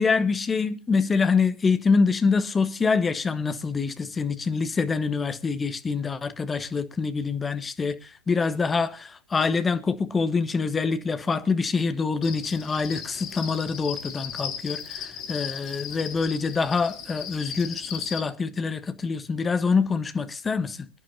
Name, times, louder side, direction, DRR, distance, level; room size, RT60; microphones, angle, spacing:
voice 1, 0.0-8.0 8.3-20.9, left 4 dB, 15° left, 1.1 m, -25 dB
Cricket, 12.2-18.2, left 8 dB, 35° left, 2.7 m, -36 dB
24.5 x 10.5 x 2.7 m
figure-of-eight pair, 90°, 0 cm